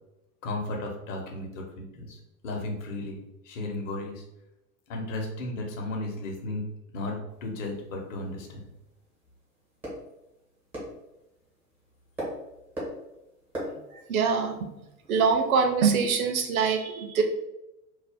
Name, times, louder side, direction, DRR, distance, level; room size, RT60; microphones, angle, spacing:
voice 1, 0.4-2.2 2.4-4.2 4.9-6.6 6.9-8.7, left 2 dB, 55° left, 1 dB, 0.8 m, -34 dB
sound 1, 7.3-16.1, equal, 5° right, 0.4 m, -43 dB
voice 2, 13.9-14.6 15.1-17.2, right 5 dB, 60° right, 5 dB, 0.6 m, -24 dB
2.6 x 2.1 x 3.3 m, 0.92 s
figure-of-eight pair, 90°, 48 cm